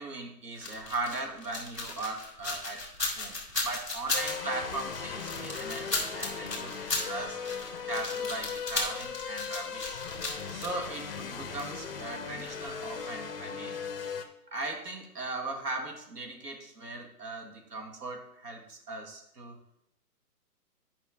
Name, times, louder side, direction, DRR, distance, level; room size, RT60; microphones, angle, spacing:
voice 1, 0.0-2.8 3.2-7.4 7.9-10.0 10.5-13.8 14.5-19.6, right 2 dB, 80° right, 3 dB, 1.7 m, -38 dB
sound 1, 0.6-12.7 12.9-13.0, left 3 dB, 5° right, 0.9 m, -35 dB
sound 2, 4.1-14.2, left 6 dB, 35° left, 0.7 m, -38 dB
8.9 x 5.4 x 3.6 m, 0.78 s
hypercardioid pair, 160°, 47 cm